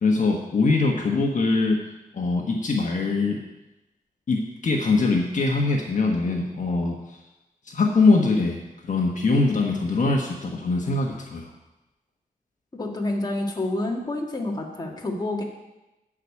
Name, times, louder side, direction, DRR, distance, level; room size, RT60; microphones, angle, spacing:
voice 1, 0.0-1.8 2.1-3.4 4.3-7.2 7.7-8.6 8.8-11.5, left 3 dB, 55° left, 0 dB, 1.3 m, -22 dB
voice 2, 12.7-15.4, left 2 dB, 25° left, -1 dB, 1.8 m, -28 dB
12.0 x 5.0 x 8.5 m, 1.0 s
wide cardioid pair, 125°, 15 cm